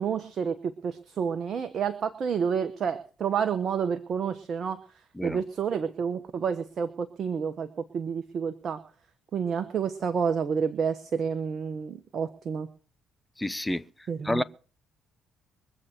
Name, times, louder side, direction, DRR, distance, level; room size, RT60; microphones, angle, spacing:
voice 1, 0.0-4.8 5.2-8.8 9.3-12.7 14.1-14.4, right 6 dB, 55° right, 1.2 m, -29 dB
voice 2, 13.4-13.8 14.2-14.4, left 1 dB, 15° left, 0.8 m, -28 dB
23.5 x 7.9 x 4.6 m
hypercardioid pair, 50°, 0 cm